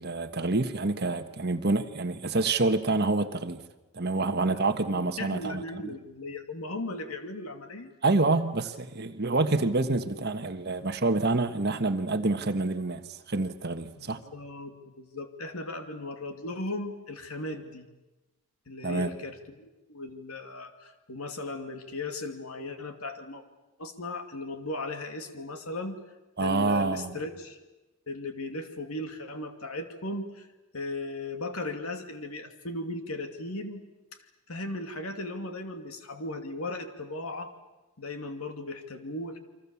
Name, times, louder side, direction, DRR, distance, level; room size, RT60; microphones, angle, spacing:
voice 1, 0.0-3.6 3.9-5.8 8.0-14.2 18.8-19.1 26.4-27.1, right 3 dB, 50° right, 1.4 m, -27 dB
voice 2, 4.9-7.9 14.0-17.9 18.7-23.4 23.8-26.0 26.4-27.6 28.1-30.5 30.7-33.8 34.5-37.5 38.0-39.4, left 2 dB, 85° left, 2.7 m, -37 dB
29.0 x 24.0 x 7.2 m
head